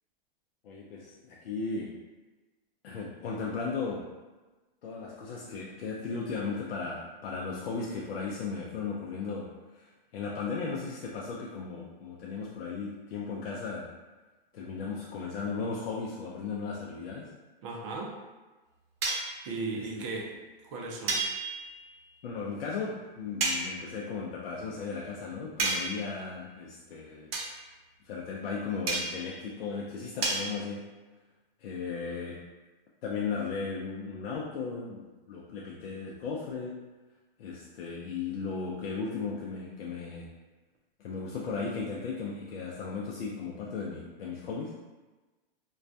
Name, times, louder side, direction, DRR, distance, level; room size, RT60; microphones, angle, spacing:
voice 1, 0.6-2.0 2.8-4.1 4.8-9.5 9.7-13.9 14.5-17.3 19.7-19.9 22.2-27.3 28.0-30.9 31.6-32.4 33.0-36.9 37.4-40.3 41.0-44.8, left 4 dB, 80° left, -3 dB, 0.5 m, -36 dB
voice 2, 17.6-18.2 19.5-20.3 20.6-21.2, right 3 dB, 35° right, -1 dB, 0.4 m, -36 dB
sound 1, 19.0-19.4 21.1-21.8 23.4-23.7 25.6-26.1 27.3-27.6 28.9-29.3 30.2-30.5, right 3 dB, 85° right, 0.7 m, -30 dB
2.2 x 2.2 x 2.6 m, 1.2 s
hypercardioid pair, 135°, 29 cm